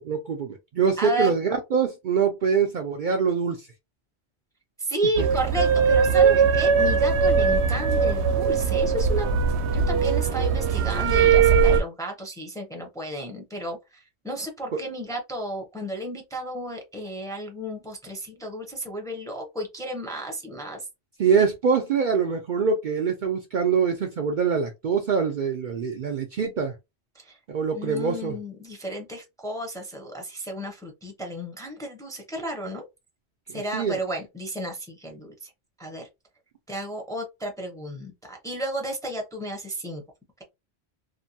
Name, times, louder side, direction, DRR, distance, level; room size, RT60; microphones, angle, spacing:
voice 1, 0.1-3.7 14.7-14.8 21.2-26.7 27.5-28.4 33.7-34.0, right 6 dB, 60° right, 0.6 m, -24 dB
voice 2, 1.0-1.3 4.8-9.3 9.7-13.8 14.2-20.8 27.2-27.4 27.7-32.8 33.5-35.5 35.8-36.1 36.7-40.0, right 1 dB, 5° left, 0.6 m, -32 dB
sound 1, 5.2-11.8, right 6 dB, 80° right, 0.8 m, -20 dB
2.8 x 2.2 x 2.7 m
omnidirectional pair, 1.1 m